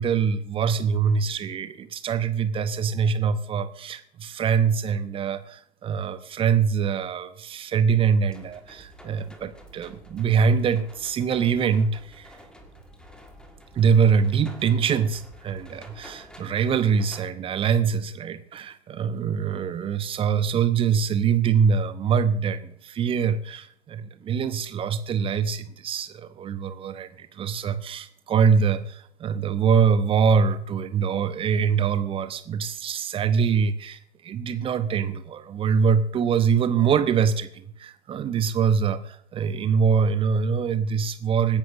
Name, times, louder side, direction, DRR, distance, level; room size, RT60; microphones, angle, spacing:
voice 1, 0.0-12.4 13.7-41.6, right 6 dB, 15° right, 12 dB, 0.8 m, -24 dB
sound 1, 8.3-17.3, equal, 5° left, 1.6 m, -49 dB
25.5 x 10.5 x 2.6 m, 0.67 s
figure-of-eight pair, 105°, 33 cm